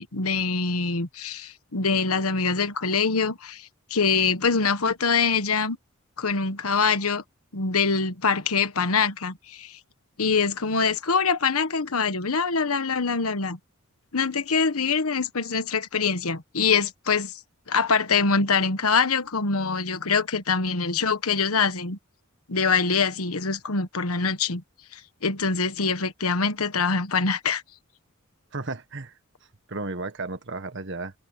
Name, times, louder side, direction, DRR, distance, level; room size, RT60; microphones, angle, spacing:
voice 1, 0.0-5.8 6.2-7.2 7.5-9.8 10.2-13.6 14.1-17.3 17.7-22.0 22.5-24.6 24.9-27.6, left 5 dB, 85° left, 1.4 m, -24 dB
voice 2, 28.5-29.1 29.7-31.1, right 3 dB, 55° right, 1.6 m, -33 dB
head